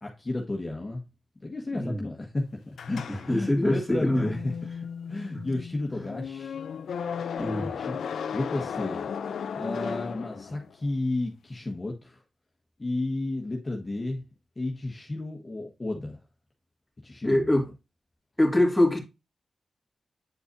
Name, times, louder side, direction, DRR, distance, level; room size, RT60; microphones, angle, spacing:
voice 1, 0.0-1.0 1.4-4.5 5.1-6.5 7.5-8.0 8.3-9.1 9.6-12.2 12.8-14.2 14.6-16.2 17.0-17.6, left 2 dB, 30° left, 1.4 m, -32 dB
voice 2, 1.7-2.1 3.3-4.3 5.3-5.4 7.4-7.7 17.2-17.7 18.4-19.0, left 1 dB, 5° left, 2.6 m, -24 dB
sound 1, 2.8-10.8, left 7 dB, 90° left, 0.4 m, -35 dB
9.2 x 4.7 x 2.7 m
cardioid pair, 55°, 0 cm